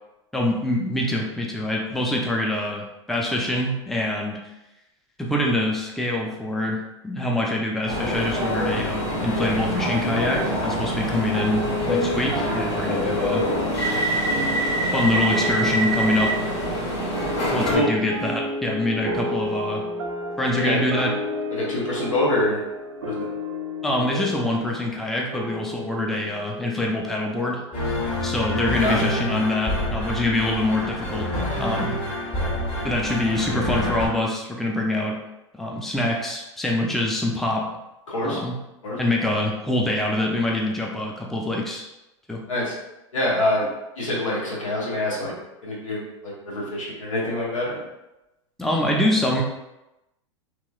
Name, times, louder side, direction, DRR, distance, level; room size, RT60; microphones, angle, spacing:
voice 1, 0.3-4.4 5.2-13.4 14.9-16.3 17.5-19.8 20.4-21.1 23.8-27.6 28.2-32.0 32.8-35.2 35.5-37.6 38.2-38.5 39.0-41.9 42.3-42.4 48.6-49.4, left 1 dB, ahead, -1 dB, 0.4 m, -25 dB
sound 1, 7.9-17.7, equal, 60° left, 1.3 m, -25 dB
sound 2, 11.3-28.1, left 1 dB, 85° right, 0.5 m, -32 dB
voice 2, 20.5-20.8 21.5-22.6 23.0-23.3 28.8-29.1 38.1-38.4 38.8-39.0 42.5-42.7 43.1-43.7 44.0-45.3 45.6-47.8, left 1 dB, 90° left, -4 dB, 1.1 m, -25 dB
sound 3, 27.7-34.1, left 1 dB, 35° left, 1.3 m, -27 dB
3.0 x 2.9 x 2.3 m, 0.95 s
hypercardioid pair, 105°, 16 cm